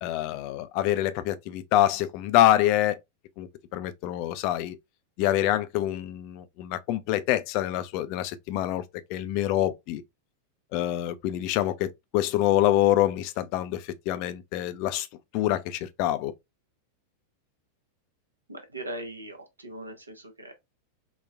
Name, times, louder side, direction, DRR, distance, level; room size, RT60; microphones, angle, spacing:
voice 1, 0.0-3.0 3.4-4.8 5.2-8.8 9.1-10.0 10.7-15.1 15.3-16.3, left 13 dB, 45° left, 0.3 m, -26 dB
voice 2, 18.5-20.5, right 1 dB, 80° right, 0.7 m, -40 dB
4.0 x 2.2 x 2.3 m
figure-of-eight pair, 90°, 0 cm